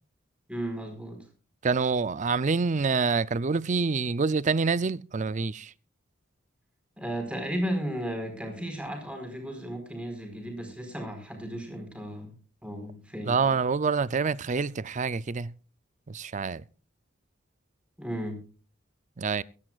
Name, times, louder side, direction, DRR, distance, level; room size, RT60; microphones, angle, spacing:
voice 1, 0.5-1.2 7.0-12.4 12.6-13.6 18.0-18.4, equal, 5° right, 4.5 m, -34 dB
voice 2, 1.6-5.7 13.3-15.5 16.1-16.6 19.2-19.4, right 4 dB, 40° right, 0.5 m, -26 dB
23.5 x 11.0 x 2.4 m
head